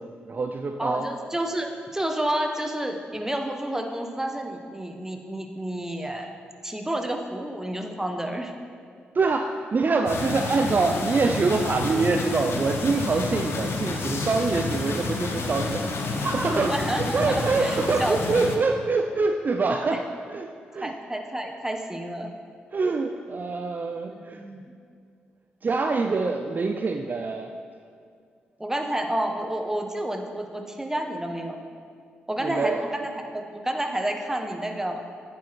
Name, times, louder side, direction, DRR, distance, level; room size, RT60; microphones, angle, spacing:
voice 1, 0.0-1.1 9.1-20.0 20.3-21.0 22.7-24.4 25.6-27.5 32.4-32.9, right 3 dB, 40° right, 5 dB, 0.4 m, -25 dB
voice 2, 0.8-6.3 6.6-8.5 16.5-18.2 19.9-20.0 20.8-22.3 24.1-24.7 28.6-31.6 32.3-35.0, right 1 dB, 10° right, 4 dB, 1.0 m, -30 dB
sound 1, 10.1-18.6, left 3 dB, 60° left, 0.8 m, -30 dB
9.4 x 4.6 x 4.6 m, 2.2 s
hypercardioid pair, 40°, 5 cm